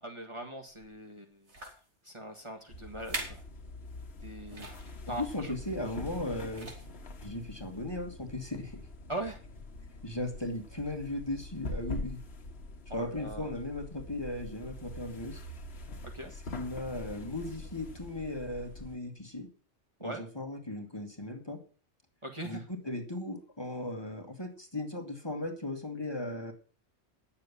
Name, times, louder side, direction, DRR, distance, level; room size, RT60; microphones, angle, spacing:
voice 1, 0.0-1.5 2.0-3.4 4.2-4.8 5.1-5.5 9.1-9.4 12.9-13.5 16.1-16.3 20.0-20.2 22.2-22.7, right 1 dB, 25° right, 1 dB, 1.8 m, -41 dB
sound 1, 0.7-0.9 1.5-1.9 2.6-2.7 3.0-3.5 3.8-4.0 4.5-4.9 6.0-6.2 6.5-7.1 7.7-7.8, right 2 dB, 80° right, 3.9 m, -42 dB
sound 2, 2.7-19.0, left 2 dB, 65° left, 1.5 m, -44 dB
voice 2, 5.2-6.7 7.2-8.8 10.0-12.2 12.9-15.4 16.5-19.5 20.0-21.6 22.4-26.5, left 1 dB, 20° left, 3 dB, 2.2 m, -37 dB
10.5 x 7.2 x 8.4 m, 0.38 s
omnidirectional pair, 1.2 m